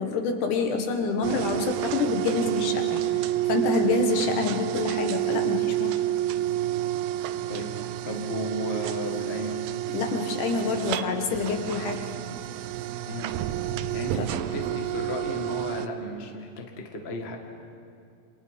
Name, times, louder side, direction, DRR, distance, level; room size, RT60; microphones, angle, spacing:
voice 1, 0.0-6.0 9.9-12.0 14.2-14.3, left 4 dB, 60° left, 4 dB, 2.6 m, -27 dB
sound 1, 1.2-15.9, right 14 dB, 80° right, 2.2 m, -29 dB
voice 2, 8.0-9.6 13.1-13.3 13.9-17.4, left 1 dB, 80° left, 2 dB, 0.5 m, -34 dB
28.5 x 26.0 x 5.3 m, 2.4 s
omnidirectional pair, 4.8 m